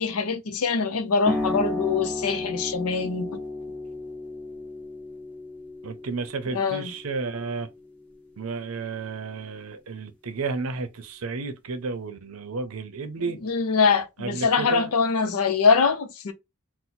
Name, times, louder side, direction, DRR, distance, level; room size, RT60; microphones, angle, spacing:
voice 1, 0.0-3.4 6.5-6.9 13.4-16.3, left 5 dB, 85° left, 0.6 m, -23 dB
sound 1, 1.3-8.4, left 2 dB, 5° left, 1.1 m, -33 dB
voice 2, 5.8-7.7 8.4-13.4 14.2-14.9, right 4 dB, 75° right, 0.6 m, -32 dB
4.2 x 2.1 x 2.7 m
head